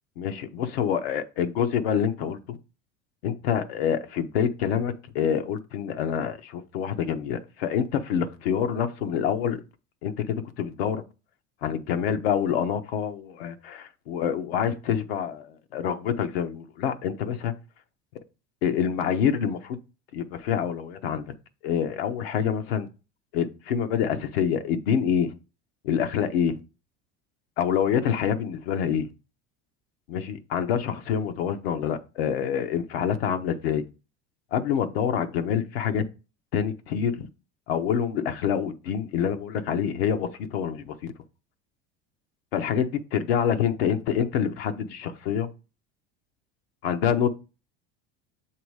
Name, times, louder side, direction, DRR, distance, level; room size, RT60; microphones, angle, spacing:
voice 1, 0.2-2.6 3.2-9.6 10.0-11.0 11.6-17.5 18.6-19.8 20.1-21.3 21.6-22.9 23.3-25.3 25.8-26.6 27.6-29.1 30.1-33.8 34.5-36.0 36.5-37.3 37.7-41.0 42.5-45.5 46.8-47.3, left 8 dB, 90° left, 0.8 m, -26 dB
7.1 x 2.9 x 4.7 m
supercardioid pair, 115°, 29 cm